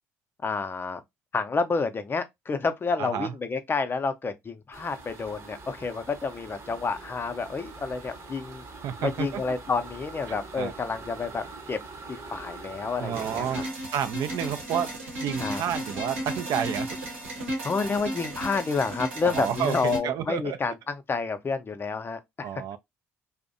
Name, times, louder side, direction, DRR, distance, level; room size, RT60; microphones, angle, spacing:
voice 1, 0.4-1.0 1.3-8.6 9.0-11.8 12.1-13.6 15.4-15.6 17.6-22.5, left 4 dB, 30° left, 0.5 m, -29 dB
voice 2, 3.0-3.3 8.8-9.5 10.3-10.7 13.0-13.6 13.9-14.9 15.2-17.0 19.2-20.7 22.4-22.8, right 9 dB, 60° right, 0.4 m, -30 dB
sound 1, 4.7-13.7, right 3 dB, 45° right, 0.8 m, -43 dB
sound 2, 13.1-20.0, right 1 dB, 90° right, 0.9 m, -34 dB
2.5 x 2.1 x 2.5 m
hypercardioid pair, 55°, 7 cm